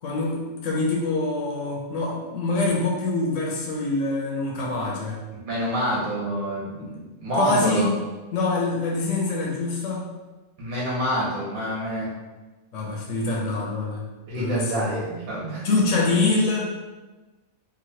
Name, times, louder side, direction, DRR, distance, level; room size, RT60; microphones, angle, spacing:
voice 1, 0.0-5.2 6.8-6.9 7.4-7.9 8.3-10.1 12.7-14.0 14.4-15.0 15.6-16.7, left 2 dB, 70° left, -3 dB, 1.0 m, -25 dB
voice 2, 5.3-7.9 10.6-12.1 14.3-15.6, equal, 80° right, -6 dB, 1.6 m, -27 dB
3.1 x 2.6 x 2.7 m, 1.2 s
omnidirectional pair, 1.4 m